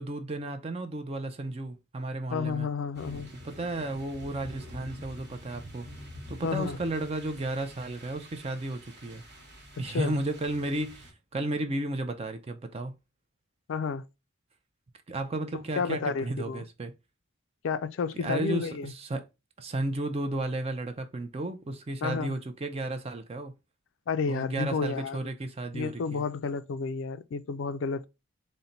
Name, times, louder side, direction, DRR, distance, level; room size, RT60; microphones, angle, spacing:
voice 1, 0.0-2.7 3.4-5.9 6.3-9.2 9.8-12.9 15.1-16.9 18.2-19.3 19.6-23.5 24.3-26.2, right 2 dB, 30° right, 0.4 m, -33 dB
voice 2, 2.3-3.3 6.4-6.8 9.9-10.1 13.7-14.1 15.8-16.6 17.6-18.9 22.0-22.3 24.1-25.3 25.7-28.1, left 5 dB, 65° left, 0.3 m, -31 dB
sound 1, 2.9-11.1, equal, 50° right, 1.1 m, -47 dB
4.1 x 2.1 x 3.8 m
head